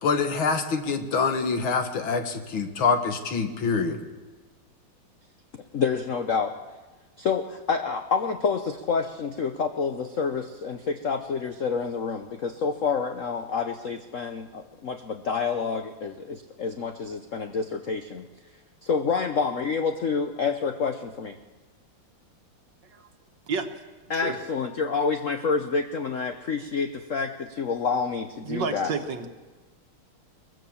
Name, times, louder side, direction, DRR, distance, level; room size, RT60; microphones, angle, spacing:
voice 1, 0.0-4.0, left 5 dB, 70° left, 7 dB, 2.3 m, -25 dB
voice 2, 5.7-6.6 7.2-18.3 18.8-21.4 24.1-28.9, left 5 dB, 55° left, 7 dB, 0.9 m, -28 dB
voice 3, 28.4-29.3, right 5 dB, 60° right, 6 dB, 1.8 m, -30 dB
23.0 x 20.5 x 7.2 m, 1.3 s
omnidirectional pair, 2.4 m